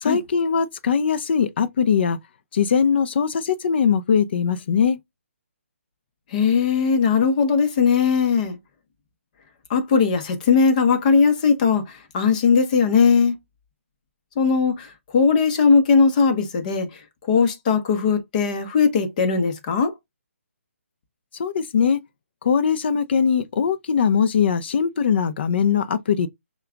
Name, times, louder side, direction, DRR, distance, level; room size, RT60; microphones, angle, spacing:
voice 1, 0.0-2.2 2.5-5.0 21.4-22.0 22.4-26.3, left 7 dB, 50° left, 0.5 m, -21 dB
voice 2, 6.3-8.6 9.7-13.3 14.4-19.9, left 5 dB, 35° left, 0.9 m, -19 dB
5.6 x 2.3 x 2.2 m
hypercardioid pair, 155°, 7 cm